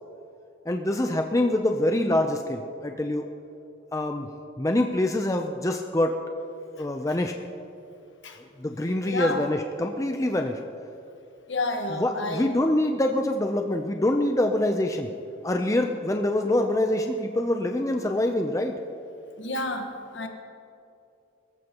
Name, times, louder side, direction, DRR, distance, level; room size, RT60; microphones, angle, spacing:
voice 1, 0.7-3.3 3.9-4.3 4.6-6.2 6.8-7.4 8.4-10.6 11.9-15.1 15.4-18.8, left 1 dB, 15° left, 4 dB, 0.5 m, -25 dB
voice 2, 9.0-9.4 11.5-12.6 19.4-20.3, left 2 dB, 65° left, 4 dB, 1.4 m, -30 dB
23.0 x 14.5 x 2.9 m, 2.7 s
head